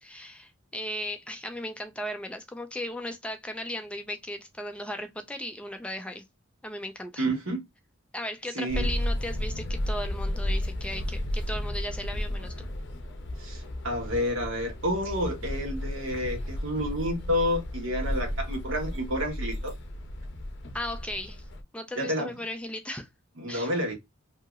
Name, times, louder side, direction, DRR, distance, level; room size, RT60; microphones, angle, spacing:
voice 1, 0.0-6.2 6.6-7.3 8.1-12.7 20.7-21.4 21.7-23.1 23.5-23.7, left 1 dB, 5° left, 0.3 m, -36 dB
voice 2, 7.2-7.6 8.5-8.9 13.4-19.7 22.0-22.3 23.4-23.9, equal, 75° right, 1.2 m, -29 dB
sound 1, 8.7-21.6, left 1 dB, 60° left, 0.6 m, -33 dB
2.9 x 2.7 x 2.3 m
head